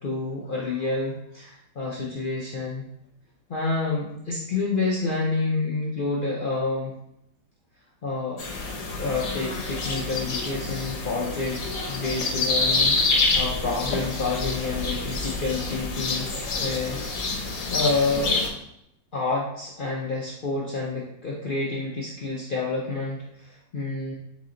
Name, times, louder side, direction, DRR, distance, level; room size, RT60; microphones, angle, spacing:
voice 1, 0.0-2.8 3.5-6.9 8.0-8.4 9.0-16.3 16.6-17.0 17.3-18.4 19.1-24.1, left 3 dB, 80° left, -4 dB, 0.4 m, -28 dB
sound 1, 8.4-18.5, left 3 dB, 60° left, 1.1 m, -27 dB
4.0 x 3.0 x 3.8 m, 0.77 s
omnidirectional pair, 1.8 m